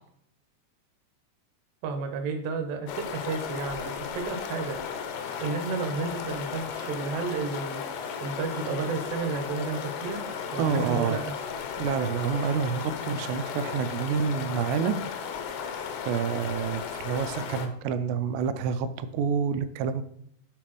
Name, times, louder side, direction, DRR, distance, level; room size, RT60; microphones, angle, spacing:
voice 1, 1.8-4.8 5.4-7.8 8.2-10.2 10.5-11.2, right 4 dB, 70° right, 4 dB, 2.3 m, -32 dB
sound 1, 2.9-17.7, left 7 dB, 85° left, 3.0 m, -35 dB
voice 2, 10.6-11.3 11.8-15.0 16.1-20.0, right 6 dB, 90° right, 11 dB, 2.7 m, -28 dB
10.0 x 4.1 x 3.0 m, 0.70 s
omnidirectional pair, 4.9 m